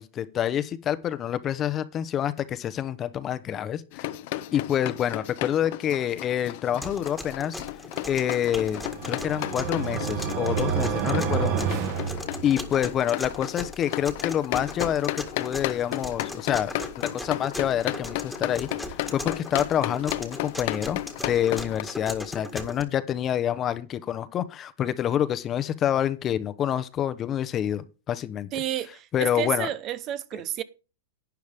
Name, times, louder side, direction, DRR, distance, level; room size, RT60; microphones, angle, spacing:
voice 1, 0.0-4.1 4.5-7.6 8.1-11.8 12.4-28.5 29.1-29.7, left 10 dB, 25° left, 0.9 m, -27 dB
sound 1, 3.9-21.8, left 16 dB, 55° left, 0.7 m, -34 dB
sound 2, 6.8-22.8, left 1 dB, ahead, 1.8 m, -38 dB
sound 3, 8.5-12.9, right 8 dB, 50° right, 2.4 m, -29 dB
voice 2, 28.5-30.6, right 12 dB, 35° right, 0.7 m, -31 dB
12.0 x 9.3 x 3.6 m
hypercardioid pair, 135°, 0 cm